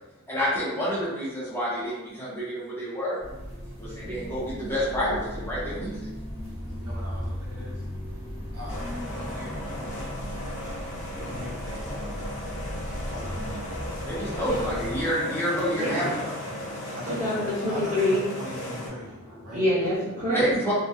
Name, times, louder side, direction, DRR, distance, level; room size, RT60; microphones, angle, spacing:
voice 1, 0.3-3.2 3.8-6.0 14.0-16.3 20.3-20.7, equal, 10° left, -9 dB, 0.8 m, -28 dB
sound 1, 3.2-15.0, equal, 15° right, 1.3 m, -36 dB
voice 2, 6.7-7.8 8.5-12.4 12.8-13.7 16.9-19.2 19.4-19.6, left 1 dB, 85° right, -4 dB, 0.7 m, -42 dB
sound 2, 8.7-18.9, left 1 dB, 60° left, 0.7 m, -37 dB
voice 3, 14.5-14.8 15.7-16.1 16.5-18.2 19.4-20.5, left 1 dB, 35° right, -9 dB, 1.2 m, -27 dB
2.3 x 2.2 x 2.7 m, 1.0 s
head